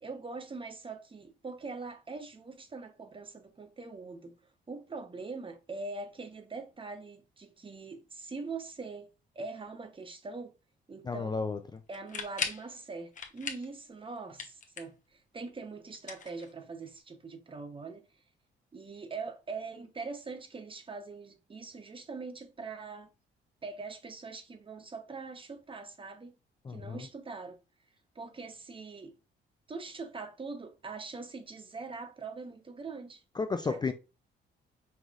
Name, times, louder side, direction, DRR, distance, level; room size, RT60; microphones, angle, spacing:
voice 1, 0.0-4.3 4.7-9.1 9.3-10.5 10.9-11.4 11.9-18.0 18.7-23.1 23.6-26.3 26.7-27.6 28.1-29.1 29.7-33.2 33.5-33.9, right 4 dB, 25° right, 0.8 m, -42 dB
voice 2, 11.0-11.8 26.6-27.1 33.4-33.9, left 4 dB, 20° left, 0.4 m, -33 dB
sound 1, 11.9-12.7 13.1-13.7 14.0-15.1 15.9-16.9, left 5 dB, 40° left, 0.9 m, -38 dB
5.5 x 3.0 x 2.4 m
cardioid pair, 90°, 20 cm